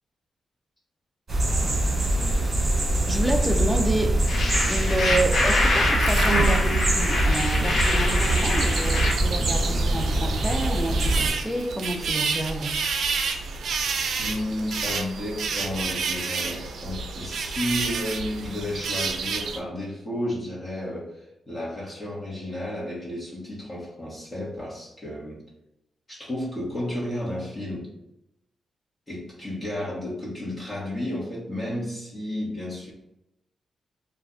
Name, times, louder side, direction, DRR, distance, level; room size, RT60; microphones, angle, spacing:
sound 1, 1.3-11.3, right 1 dB, 40° right, 1.1 m, -24 dB
voice 1, 3.1-4.2 4.7-12.8, right 1 dB, 5° right, 4 dB, 0.4 m, -29 dB
sound 2, 4.3-9.1, left 2 dB, 65° left, 0.7 m, -25 dB
sound 3, 5.4-19.6, right 4 dB, 80° right, 0.3 m, -30 dB
voice 2, 14.2-25.4 26.1-27.9 29.1-32.9, left 1 dB, 30° left, -6 dB, 1.0 m, -32 dB
2.4 x 2.2 x 3.6 m, 0.87 s
cardioid pair, 80°, 0 cm